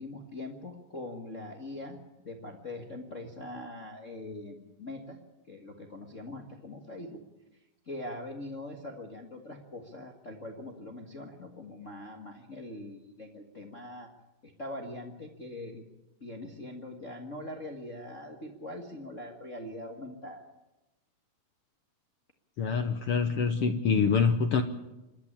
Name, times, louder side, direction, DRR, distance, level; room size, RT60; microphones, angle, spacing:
voice 1, 0.0-2.0 2.2-5.2 5.5-7.2 7.8-14.1 14.4-15.8 16.2-20.4, left 1 dB, 35° left, 2 dB, 1.4 m, -42 dB
voice 2, 22.6-24.6, left 5 dB, 70° left, 7 dB, 1.4 m, -25 dB
27.0 x 12.0 x 8.6 m, 0.98 s
omnidirectional pair, 3.8 m